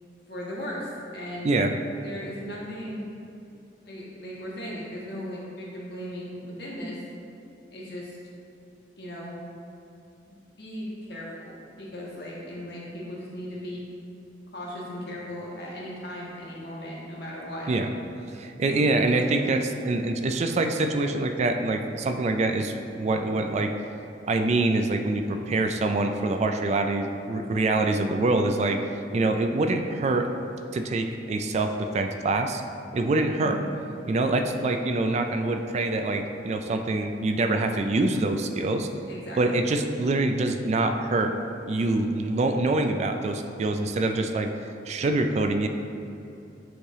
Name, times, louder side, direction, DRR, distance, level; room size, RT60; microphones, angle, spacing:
voice 1, 0.3-1.6 2.0-3.1 3.8-7.0 7.7-8.2 9.0-9.4 10.3-13.8 14.5-17.7 18.7-19.3 33.3-33.6 39.1-39.7, equal, 65° left, -5 dB, 1.4 m, -37 dB
voice 2, 18.3-23.7 24.3-28.8 29.1-30.3 30.7-32.6 32.9-33.6 34.1-38.9 39.4-41.3 41.7-44.5 44.9-45.7, right 2 dB, 40° right, 6 dB, 0.3 m, -25 dB
7.9 x 3.3 x 3.5 m, 2.8 s
head